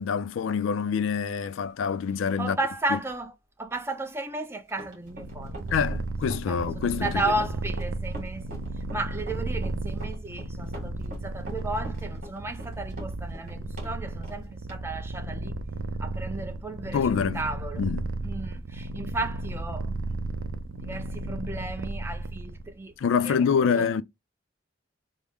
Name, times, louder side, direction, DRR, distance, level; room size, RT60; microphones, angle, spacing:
voice 1, 0.0-2.6 2.9-3.0 5.7-7.2 16.9-17.4 17.8-18.1 23.0-24.0, left 6 dB, 85° left, 0.3 m, -26 dB
voice 2, 2.4-3.3 3.6-5.6 6.5-8.6 8.9-15.6 16.0-17.8 18.2-20.2 20.7-23.5 23.7-23.9, right 2 dB, 15° right, 0.5 m, -34 dB
Run, 4.7-13.9 14.2-14.4 14.7-14.8, equal, 45° right, 1.8 m, -43 dB
Purr, 5.0-22.7, right 2 dB, 85° right, 0.5 m, -34 dB
3.4 x 2.0 x 3.4 m
head